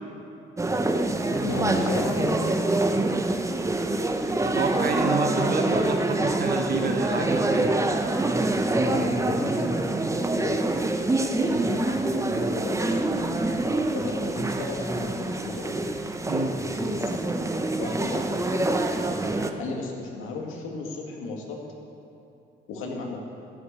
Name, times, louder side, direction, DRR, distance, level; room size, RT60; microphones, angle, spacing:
sound 1, 0.6-19.5, right 2 dB, 15° right, 0.9 m, -26 dB
voice 1, 1.4-2.9 8.8-10.0 10.3-10.8 11.4-13.0 13.9-15.9 16.3-17.0 17.8-18.8 19.6-21.6 22.7-23.2, left 3 dB, 90° left, 0 dB, 2.1 m, -34 dB
voice 2, 4.4-7.7 16.3-16.6, right 4 dB, 50° right, 3 dB, 1.2 m, -29 dB
14.0 x 6.3 x 8.5 m, 2.8 s
cardioid pair, 90°, 20 cm